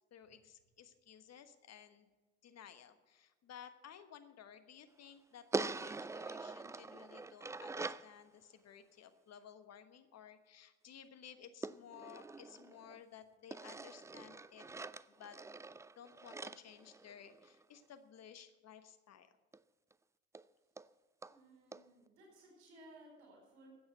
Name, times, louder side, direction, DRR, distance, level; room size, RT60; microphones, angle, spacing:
voice 1, 0.1-2.1 2.4-14.7 15.1-15.6 16.0-19.4, left 8 dB, 50° left, 10 dB, 1.3 m, -56 dB
sound 1, 5.5-8.1 11.6-13.0 13.5-17.6 19.5-19.6 19.9-20.0 20.3-20.4 20.8-20.9 21.2-21.3 21.7-21.8, right 3 dB, 10° right, 0.3 m, -44 dB
voice 2, 21.3-23.7, right 1 dB, 80° right, 0 dB, 4.9 m, -60 dB
13.5 x 8.7 x 8.0 m, 1.3 s
hypercardioid pair, 50°, 34 cm